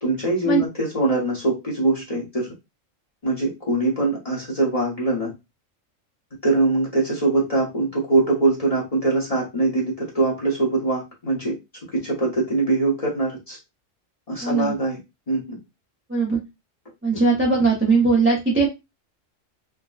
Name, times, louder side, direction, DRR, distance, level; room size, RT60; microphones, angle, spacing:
voice 1, 0.0-2.5 3.2-5.3 6.4-11.5 11.9-13.6 14.3-15.0 15.3-15.6 17.1-17.2, right 2 dB, 30° left, -3 dB, 0.9 m, -22 dB
voice 2, 14.4-14.7 16.1-16.4 17.0-18.7, right 4 dB, 15° right, -3 dB, 0.6 m, -19 dB
3.7 x 2.2 x 2.3 m, 0.22 s
omnidirectional pair, 1.3 m